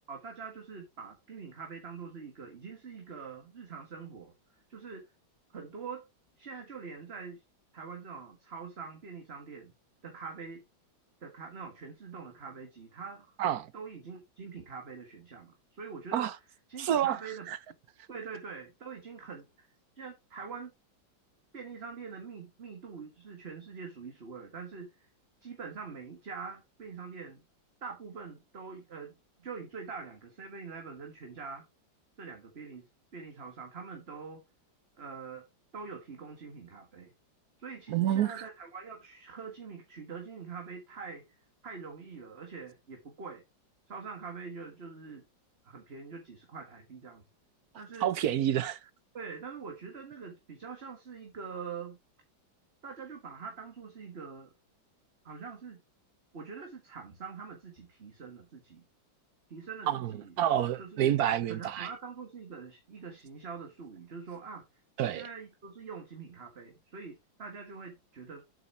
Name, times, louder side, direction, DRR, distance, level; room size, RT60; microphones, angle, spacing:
voice 1, 0.1-4.3 4.7-5.0 5.5-6.0 6.4-7.4 7.7-9.7 10.0-10.6 11.2-13.4 13.7-16.3 16.7-17.5 18.1-19.7 20.0-20.7 21.5-25.1 25.4-27.4 27.8-31.6 32.2-34.4 35.0-35.4 35.7-37.1 37.6-41.2 41.6-43.4 43.9-45.2 45.6-47.2 47.7-48.1 49.1-52.0 52.8-54.5 55.2-55.8 56.3-58.8 59.5-60.3 60.8-61.1 61.5-64.6 65.0-68.4, right 5 dB, 35° right, 1.8 m, -44 dB
voice 2, 16.8-17.2 17.5-17.6 37.9-38.4 48.0-48.8 59.9-60.1 60.4-61.9 65.0-65.2, right 11 dB, 65° right, 1.0 m, -28 dB
8.3 x 6.8 x 4.4 m
omnidirectional pair, 2.0 m